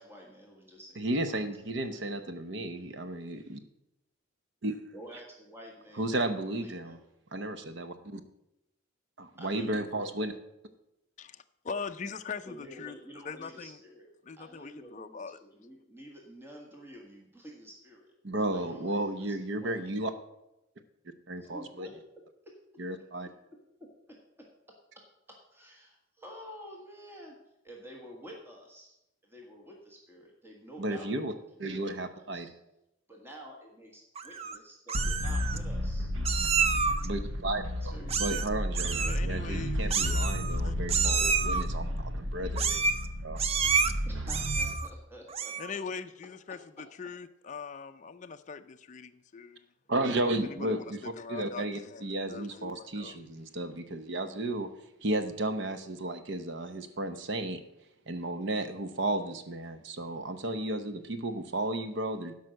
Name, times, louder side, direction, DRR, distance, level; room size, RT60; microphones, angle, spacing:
voice 1, 0.0-2.1 4.9-6.2 6.5-7.0 9.4-10.1 12.5-19.9 21.3-22.8 23.2-24.5 25.3-27.3 27.6-29.0 29.2-31.1 31.7-32.5 33.1-36.1 37.9-38.4 44.0-45.8 47.0-47.1 51.3-51.7, equal, 10° right, -1 dB, 1.5 m, -50 dB
voice 2, 1.0-3.6 4.6-4.8 6.0-7.0 7.3-8.2 9.2-10.3 18.2-20.1 21.3-21.9 22.8-23.3 30.8-31.3 31.6-32.5 37.0-37.9 38.2-42.8 43.2-43.4 49.9-54.7 55.0-57.6 58.1-62.3, right 1 dB, 60° right, 9 dB, 0.8 m, -33 dB
voice 3, 11.2-13.0 13.2-13.8 14.3-15.4 39.0-40.0 40.6-40.7 45.6-49.6 50.4-53.2, left 5 dB, 35° left, 8 dB, 0.4 m, -41 dB
Meow, 34.2-34.6 34.9-35.6 36.3-37.1 38.1-38.5 38.7-39.2 39.9-40.6 40.9-41.6 42.6-43.1 43.4-43.9 44.3-44.9 45.3-45.7, right 5 dB, 30° right, 0.4 m, -29 dB
sound 1, 34.9-44.7, equal, 90° right, 1.2 m, -32 dB
12.0 x 5.5 x 6.3 m, 0.88 s
head